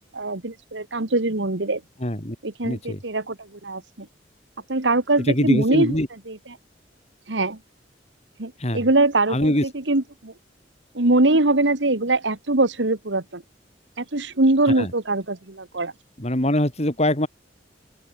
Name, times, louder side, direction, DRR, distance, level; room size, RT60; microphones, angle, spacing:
voice 1, 0.0-1.8 2.4-4.1 4.7-5.9 6.3-6.4 7.3-7.6 8.4-10.3 10.9-13.4 14.0-15.9, right 2 dB, 85° right, 2.0 m, -22 dB
voice 2, 2.0-2.4 2.6-3.0 5.3-6.1 8.6-8.8 9.3-9.6 14.8-14.9 16.2-17.3, left 1 dB, 35° left, 4.4 m, -23 dB
open air
head